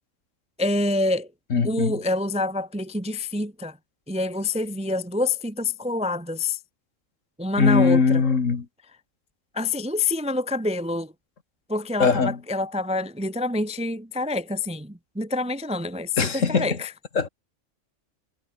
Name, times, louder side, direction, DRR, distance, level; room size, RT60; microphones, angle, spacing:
voice 1, 0.6-1.3 1.6-3.8 4.1-6.6 7.4-8.2 9.5-11.1 11.7-16.9, left 2 dB, 5° right, 0.7 m, -27 dB
voice 2, 1.5-2.0 7.6-8.7 12.0-12.4 16.2-16.8 17.2-17.3, left 5 dB, 65° left, 2.3 m, -21 dB
omnidirectional pair, 1.4 m